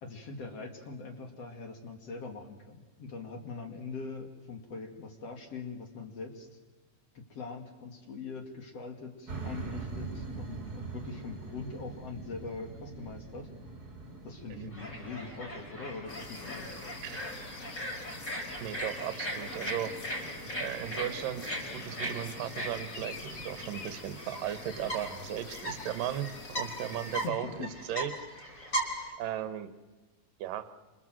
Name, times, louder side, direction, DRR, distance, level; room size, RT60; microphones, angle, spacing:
voice 1, 0.0-6.6 7.1-13.5 14.2-16.7 27.2-27.7, left 4 dB, 45° left, 4 dB, 3.0 m, -42 dB
sound 1, 9.3-24.1, right 3 dB, 25° right, 2.9 m, -45 dB
sound 2, 14.7-29.1, equal, 20° left, 5.5 m, -39 dB
sound 3, 16.1-27.3, left 3 dB, 65° left, 0.8 m, -46 dB
voice 2, 18.6-19.9 20.6-28.1 29.2-29.7 30.4-30.7, right 11 dB, 65° right, 11 dB, 2.6 m, -36 dB
28.5 x 27.0 x 7.7 m, 1.2 s
omnidirectional pair, 4.5 m